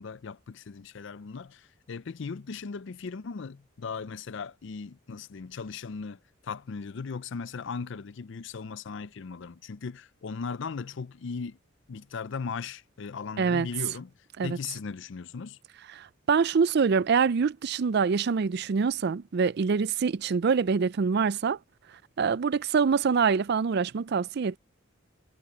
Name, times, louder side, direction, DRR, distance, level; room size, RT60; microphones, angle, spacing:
voice 1, 0.0-11.6 11.9-14.1 14.4-15.6, left 5 dB, 60° left, 0.5 m, -38 dB
voice 2, 16.0-21.6 22.2-24.6, right 5 dB, 55° right, 0.4 m, -25 dB
head